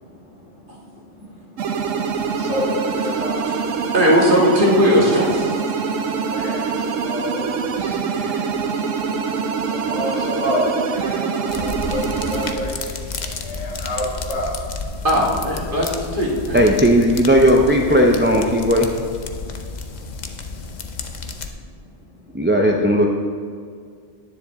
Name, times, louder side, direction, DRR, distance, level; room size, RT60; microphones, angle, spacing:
voice 1, 0.0-3.9 5.8-14.6 17.5-18.0 19.3-20.8 22.1-22.5, equal, 75° left, -3 dB, 2.2 m, -31 dB
sound 1, 1.6-12.5, right 5 dB, 90° right, 1.1 m, -24 dB
voice 2, 3.9-5.5 8.1-8.2 15.0-16.7, equal, 45° right, -4 dB, 2.0 m, -18 dB
sound 2, 11.5-21.5, left 4 dB, 45° left, 0.7 m, -31 dB
voice 3, 16.5-18.9 22.3-23.1, equal, 15° right, 0 dB, 0.4 m, -15 dB
10.5 x 9.6 x 3.6 m, 2.1 s
omnidirectional pair, 1.3 m